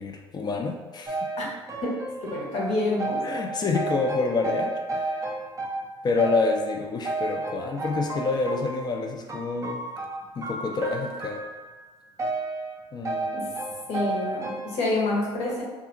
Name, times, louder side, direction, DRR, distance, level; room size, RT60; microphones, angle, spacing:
voice 1, 0.0-1.5 3.2-5.2 6.0-9.8 10.4-11.4 12.9-13.5, left 3 dB, 30° left, 3 dB, 0.5 m, -28 dB
sound 1, 1.1-5.8 6.2-8.9 9.3-11.8 12.2-12.8 13.0-14.8, right 2 dB, 20° right, 0.5 m, -32 dB
voice 2, 2.2-3.3 13.3-13.5 13.9-15.6, left 2 dB, 55° left, -3 dB, 0.9 m, -27 dB
2.7 x 2.4 x 2.6 m, 1.3 s
hypercardioid pair, 65°, 14 cm